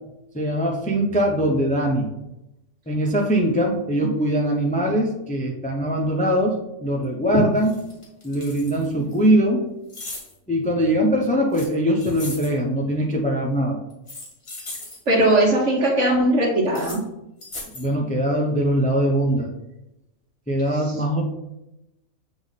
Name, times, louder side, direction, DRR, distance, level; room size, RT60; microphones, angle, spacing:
voice 1, 0.3-2.1 2.9-7.8 8.2-9.7 10.5-13.8 17.8-19.5 20.5-21.2, right 1 dB, 10° left, 0 dB, 0.6 m, -22 dB
sound 1, 7.0-7.1 7.6-9.2 9.9-10.3 11.5-12.6 13.9-15.0 16.6-17.0 17.4-17.9, left 2 dB, 45° left, 2.0 m, -38 dB
voice 2, 15.1-17.0, right 1 dB, 60° right, 0 dB, 1.7 m, -19 dB
7.9 x 3.4 x 4.1 m, 0.89 s
omnidirectional pair, 1.4 m